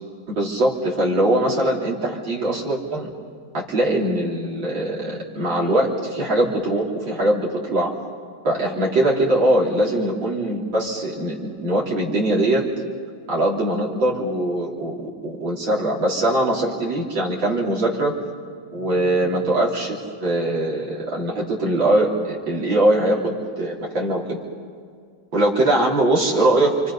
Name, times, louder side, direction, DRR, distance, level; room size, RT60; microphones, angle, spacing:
voice 1, 0.3-3.1 3.5-7.9 8.4-12.7 13.3-18.2 18.7-24.4 25.3-26.7, right 1 dB, 90° right, -4 dB, 4.2 m, -21 dB
30.0 x 26.5 x 5.6 m, 2.1 s
omnidirectional pair, 2.0 m